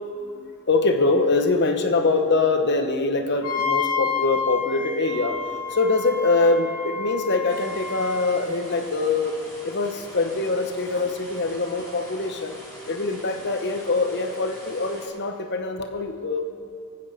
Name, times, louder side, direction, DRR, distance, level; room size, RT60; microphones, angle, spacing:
voice 1, 0.0-12.5 12.9-16.4, left 3 dB, 50° left, 6 dB, 1.1 m, -24 dB
Wind instrument woodwind instrument, 3.4-8.4, left 6 dB, 85° left, 2.0 m, -29 dB
sound 1, 7.5-15.1, equal, 15° left, 4.5 m, -43 dB
24.5 x 8.9 x 5.2 m, 2.4 s
head